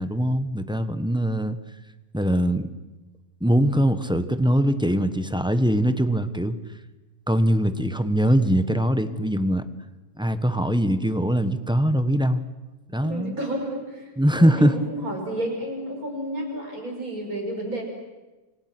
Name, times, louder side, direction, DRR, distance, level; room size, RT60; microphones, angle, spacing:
voice 1, 0.0-1.6 2.1-2.7 3.4-6.6 7.3-9.7 10.2-12.4 12.9-13.4 14.2-14.8, equal, 5° right, 10 dB, 1.0 m, -22 dB
voice 2, 13.0-17.8, right 1 dB, 60° right, 2 dB, 6.3 m, -31 dB
29.0 x 26.0 x 6.2 m, 1.1 s
omnidirectional pair, 1.7 m